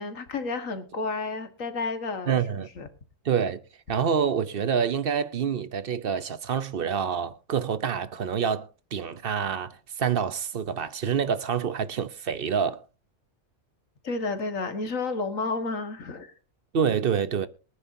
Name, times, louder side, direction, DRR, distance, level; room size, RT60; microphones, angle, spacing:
voice 1, 0.0-2.4 2.8-2.9 14.0-16.3, left 3 dB, 85° left, 2.0 m, -31 dB
voice 2, 2.3-2.7 3.2-3.6 3.9-12.8 16.7-17.5, right 7 dB, 50° right, 0.9 m, -27 dB
23.0 x 9.7 x 2.7 m
omnidirectional pair, 1.3 m